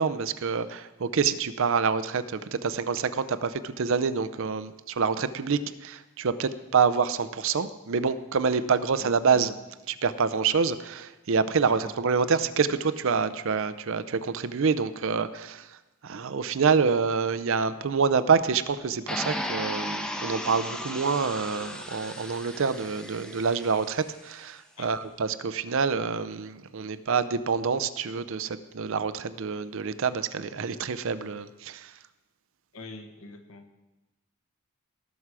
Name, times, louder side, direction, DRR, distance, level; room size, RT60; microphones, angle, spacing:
voice 1, 0.0-9.5 9.9-15.8 16.0-31.9, right 5 dB, 60° right, 13 dB, 0.5 m, -27 dB
voice 2, 9.0-9.6 11.7-11.9 24.8-25.0 32.7-33.6, left 2 dB, 65° left, 5 dB, 1.3 m, -45 dB
sound 1, 19.1-24.1, equal, 5° left, 0.7 m, -35 dB
18.5 x 6.2 x 4.8 m, 1.1 s
head